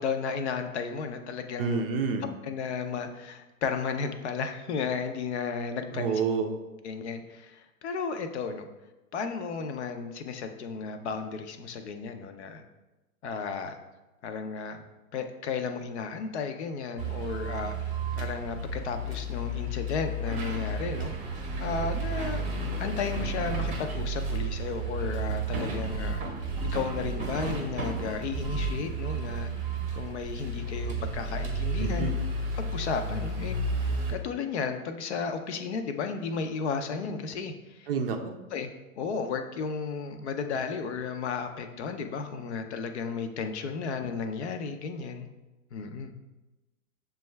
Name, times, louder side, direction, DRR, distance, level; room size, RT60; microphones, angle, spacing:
voice 1, 0.0-1.8 2.4-6.2 6.8-8.6 9.1-12.6 13.2-13.8 14.2-14.8 15.1-17.8 18.1-21.1 21.6-22.4 22.8-29.5 29.9-32.1 32.6-37.9 38.5-38.7 39.0-45.3 45.7-46.1, left 5 dB, 50° left, 7 dB, 0.5 m, -34 dB
voice 2, 1.6-2.3 5.9-6.5 31.8-32.1 37.9-38.4, right 5 dB, 40° right, 5 dB, 0.5 m, -28 dB
sound 1, 17.0-34.1, right 2 dB, 15° right, 0.8 m, -32 dB
6.7 x 2.3 x 3.2 m, 1.0 s
hypercardioid pair, 120°, 44 cm